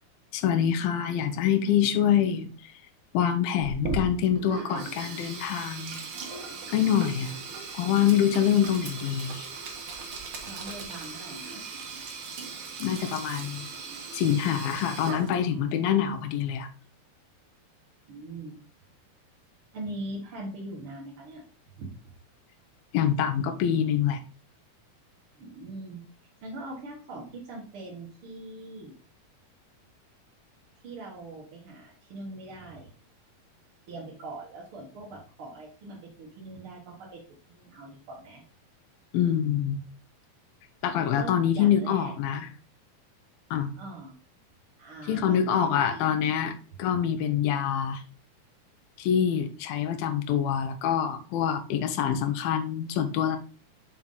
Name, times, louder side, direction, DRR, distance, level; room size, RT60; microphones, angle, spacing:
voice 1, 0.3-2.5 3.1-6.0 6.7-7.4 7.7-9.5 12.8-13.7 14.1-16.7 22.9-24.2 39.1-39.8 40.8-42.5 43.5-43.8 45.1-48.0 49.0-53.4, left 9 dB, 80° left, 2.6 m, -25 dB
Sink (filling or washing), 3.6-15.6, right 4 dB, 70° right, 1.3 m, -38 dB
voice 2, 10.4-11.6 18.1-18.6 19.7-21.4 21.8-22.1 25.4-26.0 26.4-28.9 30.8-32.9 33.9-37.2 37.5-38.4 41.2-42.1 43.8-44.2 44.8-46.1, right 2 dB, 50° right, 1.9 m, -41 dB
6.1 x 5.9 x 3.9 m
omnidirectional pair, 4.3 m